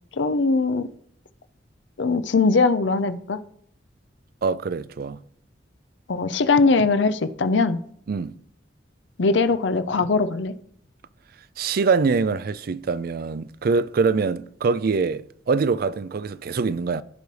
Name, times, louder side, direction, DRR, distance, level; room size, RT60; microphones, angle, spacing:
voice 1, 0.1-0.9 2.0-3.4 6.1-7.8 9.2-10.5, left 4 dB, 75° left, 0.6 m, -21 dB
voice 2, 4.4-5.2 8.1-8.3 11.6-17.0, right 4 dB, 55° right, 0.4 m, -24 dB
15.5 x 5.3 x 3.3 m
head